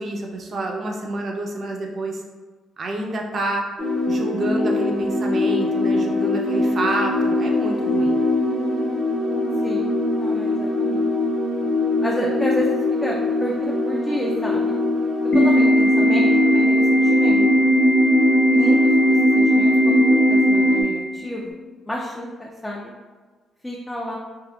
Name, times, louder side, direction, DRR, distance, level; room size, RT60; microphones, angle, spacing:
voice 1, 0.0-2.2 2.8-3.6 4.1-8.2, right 2 dB, 50° right, 1 dB, 0.5 m, -28 dB
sound 1, 3.8-20.8, left 2 dB, 80° right, 1.0 m, -22 dB
voice 2, 9.6-11.1 12.0-12.7 13.0-14.7 15.3-17.7 18.5-21.5 21.9-22.9 23.6-24.2, equal, 10° left, -2 dB, 0.4 m, -30 dB
Organ, 15.3-21.3, equal, 60° left, 0.6 m, -18 dB
3.6 x 2.4 x 2.3 m, 1.4 s
cardioid pair, 90°, 0 cm